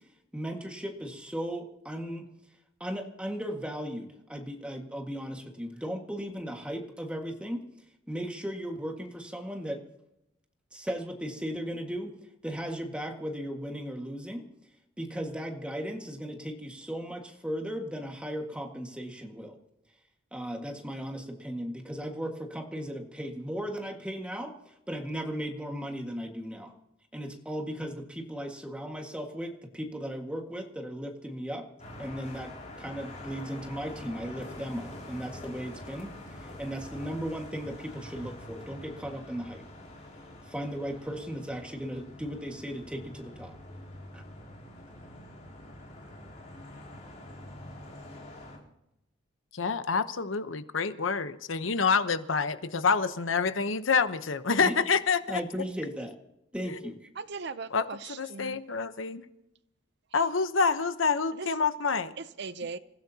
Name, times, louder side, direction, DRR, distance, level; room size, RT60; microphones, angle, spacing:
voice 1, 0.3-2.3 2.8-7.6 8.1-9.8 10.7-12.1 12.4-14.5 15.0-19.6 20.3-26.7 27.1-31.7 32.0-32.5 32.8-39.6 40.4-43.6 44.1-44.2 54.6-54.8 55.3-56.2 56.5-57.0, equal, 5° right, 1.8 m, -36 dB
sound 1, 31.8-48.6, left 1 dB, 40° left, 4.8 m, -46 dB
voice 2, 49.5-55.4 56.7-56.8 57.7-59.2 60.1-62.1, left 5 dB, 75° left, 1.0 m, -27 dB
voice 3, 57.2-58.6 61.3-61.5 62.2-62.8, right 4 dB, 60° right, 0.6 m, -39 dB
27.5 x 15.5 x 2.9 m
head